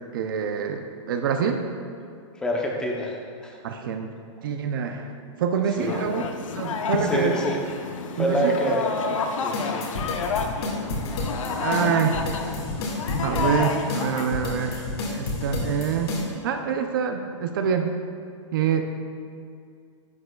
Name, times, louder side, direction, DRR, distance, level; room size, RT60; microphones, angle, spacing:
voice 1, 0.1-1.6 3.6-4.1 4.4-5.1 5.4-6.3 6.6-7.4 8.2-8.8 11.6-12.2 13.2-17.9 18.5-18.9, right 7 dB, 45° right, 6 dB, 0.5 m, -26 dB
voice 2, 2.4-3.2 3.4-3.6 5.8-6.0 7.0-7.6 8.2-8.9 9.4-9.9, equal, 5° left, -1 dB, 0.6 m, -26 dB
sound 1, 5.8-14.3, left 5 dB, 90° left, 0.8 m, -29 dB
sound 2, 9.5-16.2, left 2 dB, 55° left, 1.8 m, -31 dB
11.0 x 9.2 x 2.3 m, 2.3 s
hypercardioid pair, 170°, 16 cm